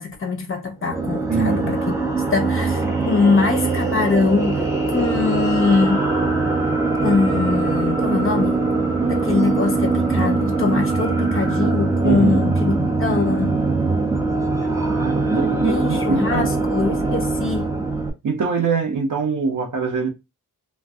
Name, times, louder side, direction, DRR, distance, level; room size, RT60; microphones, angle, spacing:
voice 1, 0.0-1.8 2.3-6.0 7.0-8.7 9.1-13.7 15.3-17.7, left 4 dB, 35° left, 0.7 m, -22 dB
sound 1, 0.8-18.1, right 3 dB, 10° right, 0.5 m, -22 dB
voice 2, 1.3-1.7 12.0-12.4 14.6-16.5 18.2-20.1, right 5 dB, 60° right, 0.8 m, -23 dB
2.5 x 2.2 x 3.4 m
wide cardioid pair, 170°, 37 cm